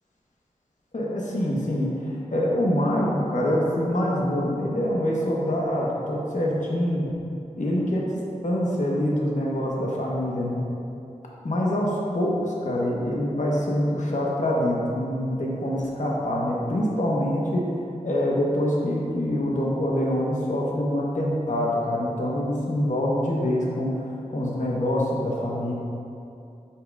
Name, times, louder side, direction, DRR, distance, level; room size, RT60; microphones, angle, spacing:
voice 1, 0.9-7.2 7.6-8.0 8.4-10.7 11.4-17.7 18.0-25.7, left 1 dB, 65° left, -4 dB, 1.2 m, -25 dB
8.5 x 5.8 x 2.5 m, 2.7 s
wide cardioid pair, 60°, 14 cm